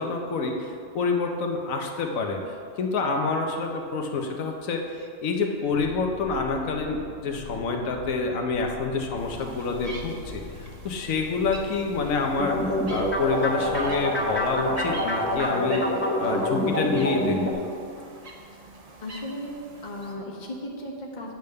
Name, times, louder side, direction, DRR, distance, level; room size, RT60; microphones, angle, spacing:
voice 1, 0.0-15.9 16.2-17.6, left 4 dB, 85° left, 3 dB, 1.2 m, -28 dB
sound 1, 5.7-15.4, left 2 dB, 60° left, 0.9 m, -43 dB
sound 2, 9.2-20.1, right 2 dB, 35° right, 0.7 m, -44 dB
sound 3, 12.4-17.5, equal, 10° left, 0.7 m, -26 dB
voice 2, 19.0-19.5 19.8-21.3, left 1 dB, 40° left, -1 dB, 1.0 m, -36 dB
9.1 x 3.5 x 6.5 m, 2.4 s
omnidirectional pair, 1.4 m